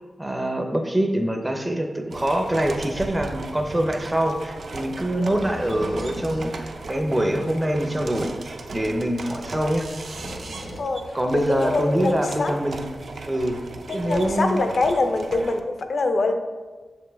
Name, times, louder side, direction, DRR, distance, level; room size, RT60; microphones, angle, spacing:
voice 1, 0.0-9.9 11.1-12.8 13.3-13.6 13.9-14.6, right 1 dB, 15° right, 3 dB, 0.5 m, -24 dB
sound 1, 2.1-15.6, right 3 dB, 65° right, 0.5 m, -37 dB
sound 2, 2.3-10.8, left 1 dB, 75° left, 1.4 m, -43 dB
voice 2, 11.3-12.5 13.9-16.3, left 3 dB, 60° left, 6 dB, 0.6 m, -24 dB
6.8 x 5.2 x 3.4 m, 1.4 s
wide cardioid pair, 125°, 0 cm